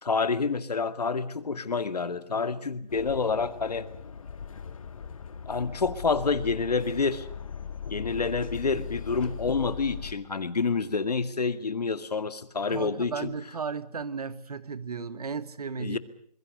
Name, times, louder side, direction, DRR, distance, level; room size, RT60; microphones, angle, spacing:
voice 1, 0.0-3.9 5.5-7.3 7.9-13.3 15.8-16.0, left 4 dB, 70° left, 12 dB, 2.1 m, -28 dB
sound 1, 2.9-10.1, left 7 dB, 55° left, 2.0 m, -39 dB
voice 2, 12.7-16.0, right 5 dB, 65° right, 15 dB, 1.7 m, -35 dB
26.5 x 22.0 x 6.7 m, 0.63 s
figure-of-eight pair, 155°, 21 cm